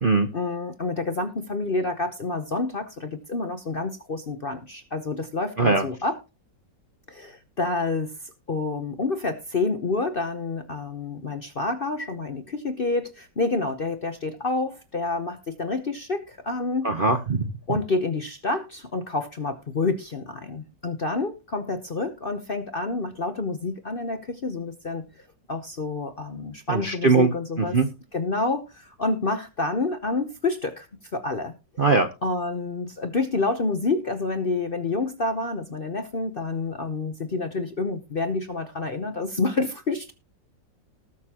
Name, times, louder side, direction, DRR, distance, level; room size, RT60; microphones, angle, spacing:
voice 1, 0.3-6.2 7.1-16.9 17.7-25.1 25.5-27.8 28.1-30.9 31.1-31.5 32.2-40.1, left 3 dB, 40° left, 8 dB, 0.8 m, -28 dB
voice 2, 16.8-17.5 26.7-27.3 27.6-27.9 31.8-32.1, right 3 dB, 45° right, 7 dB, 0.7 m, -20 dB
19.5 x 6.6 x 2.9 m, 0.28 s
omnidirectional pair, 2.0 m